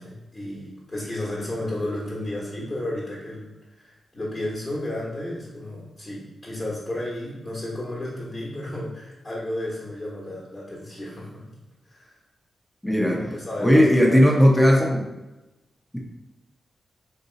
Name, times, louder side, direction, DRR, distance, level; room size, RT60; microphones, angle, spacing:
voice 1, 0.0-3.5 3.8-11.4 11.8-12.1 13.1-14.3, left 1 dB, 30° left, -6 dB, 1.3 m, -33 dB
voice 2, 12.8-13.2 13.6-15.1, equal, 5° left, -1 dB, 0.7 m, -17 dB
3.5 x 2.7 x 3.9 m, 1.0 s
cardioid pair, 65°, 0 cm